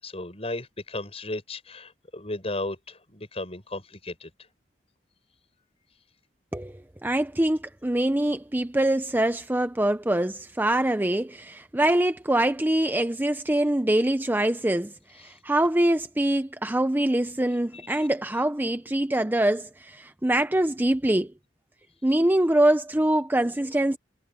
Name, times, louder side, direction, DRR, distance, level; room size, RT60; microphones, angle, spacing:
voice 1, 0.0-4.3 17.9-18.0, left 2 dB, 35° left, 7.9 m, -35 dB
voice 2, 7.0-21.3 22.0-24.0, right 1 dB, 10° right, 0.6 m, -24 dB
head